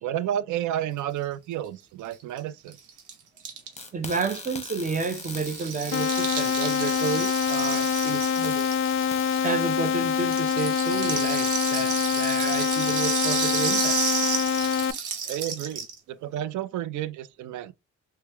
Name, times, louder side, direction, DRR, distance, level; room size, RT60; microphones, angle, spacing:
voice 1, 0.0-2.8 15.3-17.7, right 11 dB, 75° right, 0.5 m, -31 dB
Rattle (instrument), 2.1-2.2 2.4-2.5 2.7-9.8 10.1-16.0, right 6 dB, 90° right, 1.0 m, -31 dB
sound 1, 3.8-10.4, left 3 dB, 20° left, 0.9 m, -41 dB
voice 2, 3.9-8.7 9.4-14.1, right 4 dB, 25° right, 0.7 m, -31 dB
sound 2, 5.9-14.9, left 8 dB, 45° left, 0.4 m, -25 dB
3.0 x 2.2 x 3.4 m
cardioid pair, 90°, 30 cm